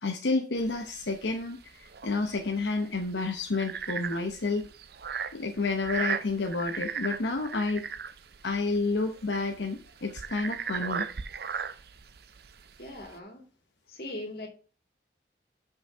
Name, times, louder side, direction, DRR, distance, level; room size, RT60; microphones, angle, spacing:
voice 1, 0.0-4.7 5.3-7.9 8.4-11.1, left 3 dB, 90° left, 0.8 m, -30 dB
sound 1, 0.6-13.2, right 6 dB, 65° right, 0.5 m, -37 dB
voice 2, 12.8-13.5 13.9-14.5, left 1 dB, 55° left, 2.2 m, -40 dB
5.7 x 5.4 x 5.6 m
head